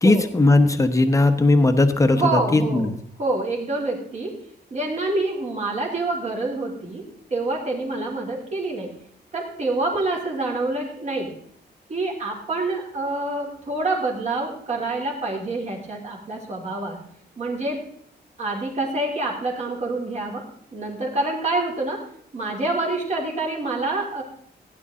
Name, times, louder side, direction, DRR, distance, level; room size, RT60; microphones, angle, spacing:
voice 1, 0.0-2.9, left 2 dB, 15° left, 7 dB, 0.9 m, -18 dB
voice 2, 2.1-2.9 3.2-4.4 4.7-8.9 9.3-11.3 11.9-17.0 17.4-17.8 18.4-20.5 20.7-22.1 22.3-24.2, right 2 dB, 40° right, -1 dB, 3.0 m, -27 dB
16.5 x 9.9 x 3.7 m, 0.66 s
wide cardioid pair, 160°, 18 cm